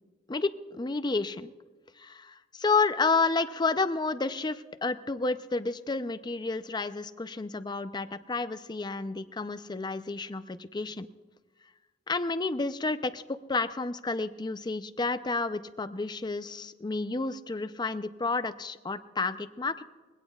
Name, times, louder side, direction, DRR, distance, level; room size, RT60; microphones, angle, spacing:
voice 1, 0.3-1.5 2.0-11.1 12.1-13.2 13.5-19.8, left 3 dB, 25° left, 12 dB, 0.5 m, -30 dB
21.5 x 17.0 x 2.4 m, 1.3 s
head